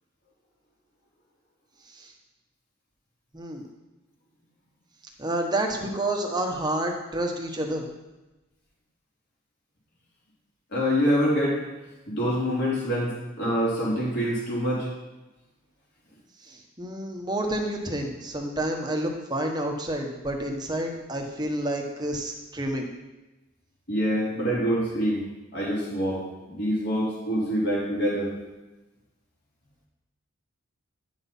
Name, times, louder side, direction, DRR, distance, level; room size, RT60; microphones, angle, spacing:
voice 1, 3.3-3.6 5.2-7.8 16.4-22.9, right 1 dB, 20° right, 2 dB, 1.2 m, -29 dB
voice 2, 10.7-11.6 12.1-14.9 23.9-25.2 25.5-26.2 26.5-28.3, equal, 50° left, -5 dB, 3.7 m, -25 dB
10.5 x 6.2 x 5.5 m, 1.1 s
head